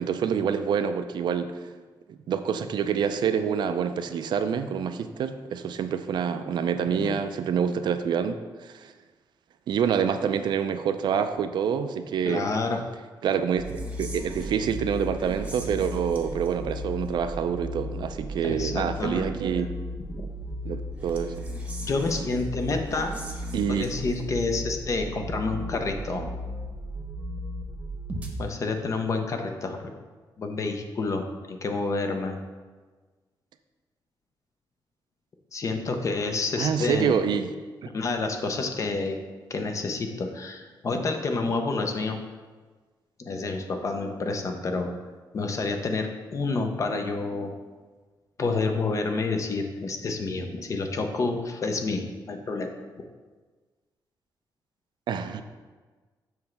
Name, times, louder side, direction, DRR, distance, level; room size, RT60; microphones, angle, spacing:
voice 1, 0.0-1.5 2.1-8.9 9.7-12.5 13.2-19.7 20.6-21.3 23.5-23.9 36.6-37.5 37.8-37.9 55.1-55.4, right 7 dB, 70° right, 9 dB, 0.4 m, -27 dB
voice 2, 12.2-12.8 18.4-19.6 20.1-20.3 21.8-23.2 23.7-26.4 28.4-29.9 30.4-32.4 35.5-37.3 37.9-39.2 39.5-42.2 43.2-44.9 45.3-47.5 48.4-52.7 53.0-53.1, left 3 dB, 40° left, 5 dB, 0.7 m, -29 dB
sound 1, 13.6-28.3, equal, 15° right, 0.9 m, -35 dB
7.2 x 3.2 x 5.8 m, 1.4 s
wide cardioid pair, 150°, 8 cm